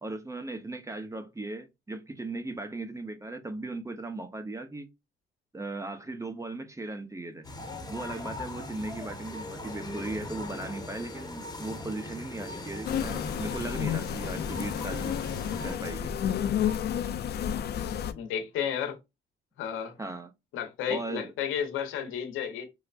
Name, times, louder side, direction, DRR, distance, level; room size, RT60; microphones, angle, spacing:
voice 1, 0.0-4.9 5.5-7.5 7.9-15.1 15.6-16.1 20.0-20.3 20.9-21.3, right 2 dB, 15° right, 0.7 m, -37 dB
sound 1, 7.4-15.8, left 2 dB, 20° left, 1.0 m, -40 dB
sound 2, 7.7-8.7 9.0-9.8 10.1-10.8 11.1-11.8 12.2-12.9 13.2-13.9 14.2-14.9 15.3-16.0 16.3-17.1, equal, 60° right, 2.3 m, -48 dB
sound 3, 12.9-18.1, left 9 dB, 55° left, 0.4 m, -31 dB
voice 2, 18.1-19.0 19.6-20.0 20.5-22.6, left 8 dB, 90° left, 0.8 m, -32 dB
4.7 x 2.1 x 2.4 m
cardioid pair, 90°, 20 cm